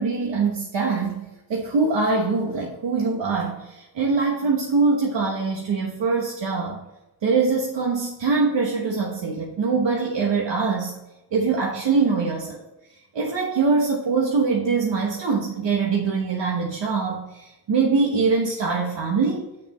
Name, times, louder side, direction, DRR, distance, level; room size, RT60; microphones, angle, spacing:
voice 1, 0.0-6.8 7.2-10.9 11.3-12.6 13.1-19.5, right 4 dB, 80° right, -1 dB, 1.3 m, -23 dB
8.1 x 6.8 x 4.3 m, 0.98 s
wide cardioid pair, 160°, 42 cm